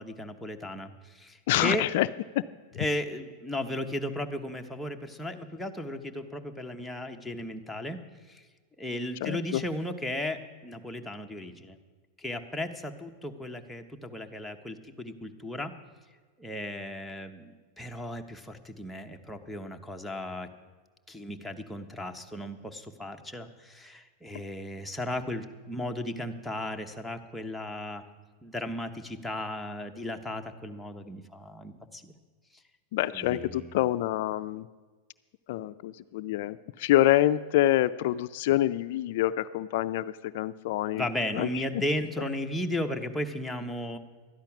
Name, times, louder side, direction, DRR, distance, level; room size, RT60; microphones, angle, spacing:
voice 1, 0.0-1.9 2.7-8.0 8.3-8.4 8.8-11.8 12.2-15.7 16.4-20.5 21.1-28.0 28.4-32.1 33.1-33.7 40.9-44.0, left 1 dB, 5° left, 3 dB, 0.9 m, -35 dB
voice 2, 1.5-2.1 2.3-2.4 2.8-2.9 9.2-9.6 32.9-34.7 35.5-41.1 41.3-41.6, left 14 dB, 65° left, 13 dB, 0.4 m, -26 dB
12.5 x 10.5 x 5.9 m, 1.4 s
supercardioid pair, 130°, 0 cm